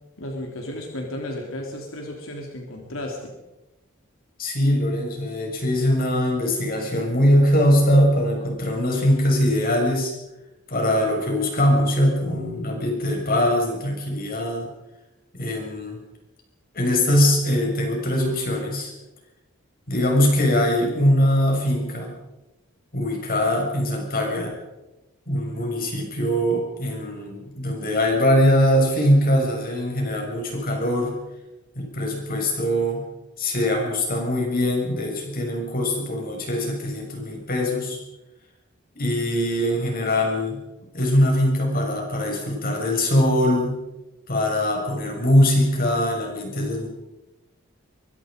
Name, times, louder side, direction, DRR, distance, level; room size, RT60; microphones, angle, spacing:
voice 1, 0.2-3.3, left 1 dB, 85° left, 1 dB, 3.3 m, -33 dB
voice 2, 4.4-10.1 10.7-14.7 15.3-16.0 16.7-18.9 19.9-22.1 22.9-24.6 25.3-31.2 31.8-33.0 33.4-38.0 39.0-40.6 40.9-43.8 44.3-46.9, equal, 45° left, 1 dB, 6.9 m, -22 dB
24.0 x 23.0 x 5.3 m, 1.0 s
head